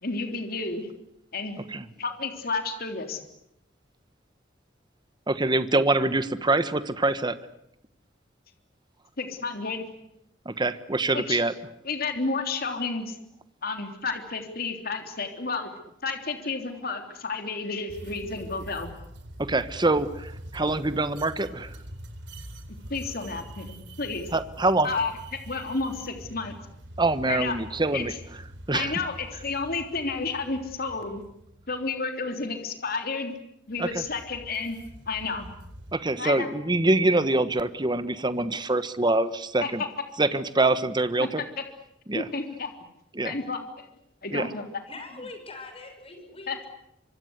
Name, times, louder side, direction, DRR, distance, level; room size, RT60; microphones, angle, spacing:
voice 1, 0.0-0.9 1.3-1.6 2.0-3.2 9.2-9.9 11.1-11.4 11.8-13.2 13.6-15.7 16.0-18.9 22.9-24.3 24.8-25.1 25.5-26.5 27.3-27.6 27.9-28.0 28.7-31.2 31.7-33.4 33.7-34.8 35.1-35.5 36.2-36.5 39.6-39.9 41.2-41.4 42.1-42.7 43.2-43.9 44.2-44.7 46.5-46.6, left 4 dB, 55° left, 6 dB, 3.4 m, -31 dB
voice 2, 5.3-7.3 10.4-11.5 19.5-21.7 24.3-24.9 27.0-28.1 28.7-28.9 33.8-34.0 35.9-39.8 40.2-41.4 42.1-42.3 43.1-43.3 44.3-44.5, right 2 dB, 25° right, 12 dB, 1.2 m, -25 dB
sound 1, 17.9-31.9 33.7-36.0, equal, 75° right, 4.2 m, -44 dB
voice 3, 44.9-46.7, left 3 dB, 30° left, 6 dB, 6.6 m, -42 dB
25.5 x 25.0 x 8.1 m, 0.79 s
head